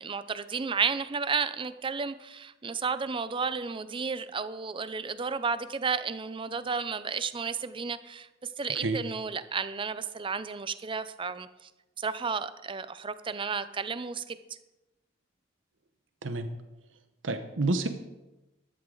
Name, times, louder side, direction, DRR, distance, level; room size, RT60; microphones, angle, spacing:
voice 1, 0.0-8.3 8.6-11.7 12.0-14.4, right 5 dB, 25° right, 14 dB, 0.5 m, -32 dB
voice 2, 17.2-17.9, right 2 dB, 75° right, 9 dB, 0.9 m, -28 dB
13.0 x 11.0 x 3.9 m, 1.0 s
head